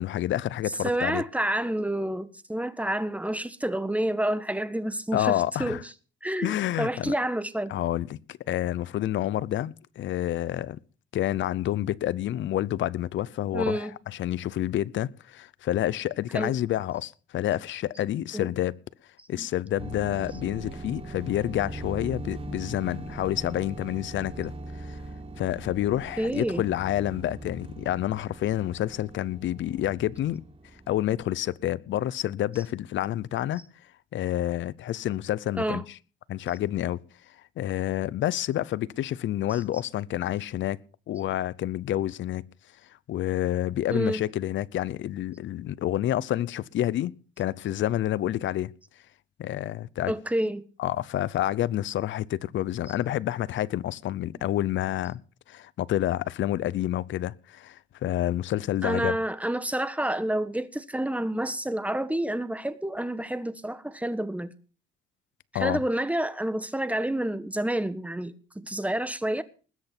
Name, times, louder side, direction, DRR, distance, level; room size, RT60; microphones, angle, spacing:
voice 1, 0.0-1.2 5.1-5.8 6.4-7.1 7.7-10.8 11.1-18.8 19.3-24.5 24.8-25.0 25.4-30.4 30.9-33.6 34.1-35.8 36.3-37.0 37.6-40.8 41.1-42.4 43.1-48.7 49.4-50.1 50.8-55.2 55.5-59.1 65.5-65.8, left 13 dB, 70° left, 0.7 m, -28 dB
voice 2, 0.8-5.8 6.2-7.7 13.5-13.9 16.3-16.5 18.3-18.5 19.4-19.5 26.2-26.6 35.6-35.8 39.5-39.6 43.9-44.2 50.1-50.6 58.8-64.5 65.5-69.4, right 1 dB, 5° right, 1.4 m, -29 dB
sound 1, 19.8-31.5, right 2 dB, 30° right, 2.4 m, -41 dB
20.5 x 8.1 x 6.1 m
cardioid pair, 90°, 20 cm